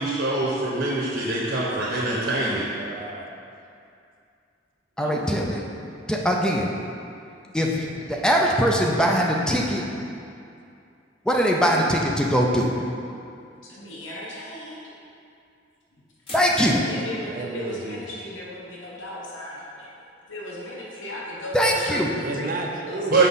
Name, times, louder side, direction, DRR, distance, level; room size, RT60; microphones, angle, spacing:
voice 1, 0.0-2.6 23.1-23.3, right 3 dB, 65° right, -5 dB, 1.0 m, -24 dB
voice 2, 1.9-3.3 5.0-5.3 17.3-18.0 22.2-23.3, right 2 dB, 50° right, 1 dB, 0.6 m, -33 dB
voice 3, 5.0-5.6 6.1-6.7 7.5-9.8 11.3-12.7 16.3-16.9 21.5-22.1, equal, 5° left, -1 dB, 0.4 m, -21 dB
sound 1, 13.5-13.6 16.3-17.0, left 1 dB, 30° left, 1.4 m, -40 dB
voice 4, 13.6-14.8 15.9-16.0 16.6-19.9 20.3-22.5 22.9-23.3, left 1 dB, 85° left, -5 dB, 1.1 m, -36 dB
5.6 x 5.0 x 4.1 m, 2.5 s
head